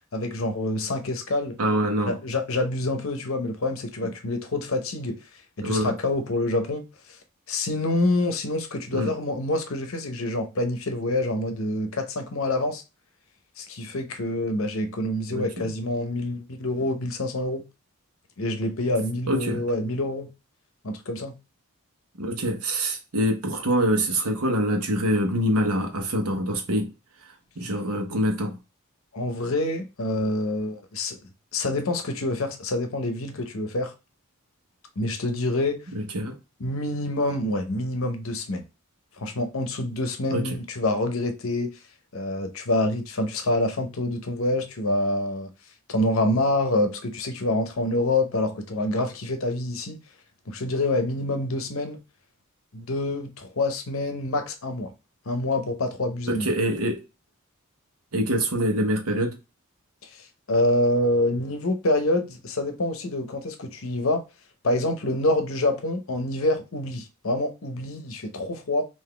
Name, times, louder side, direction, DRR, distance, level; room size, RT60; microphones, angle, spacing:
voice 1, 0.1-1.6 2.0-5.2 5.6-6.8 7.5-12.8 13.6-17.6 18.4-20.3 20.8-21.4 29.1-31.2 31.5-33.9 35.0-35.8 36.6-38.6 39.2-41.7 42.1-45.5 45.9-50.0 50.5-52.0 52.7-54.9 55.3-56.5 60.5-64.2 64.6-68.9, left 1 dB, 60° left, 0.7 m, -26 dB
voice 2, 1.6-2.2 5.6-5.9 8.9-9.1 15.3-15.7 19.3-19.6 22.2-26.9 27.6-28.6 35.9-36.4 40.3-40.6 56.3-57.0 58.1-59.4, equal, 75° right, 1.0 m, -25 dB
3.9 x 2.6 x 3.2 m
head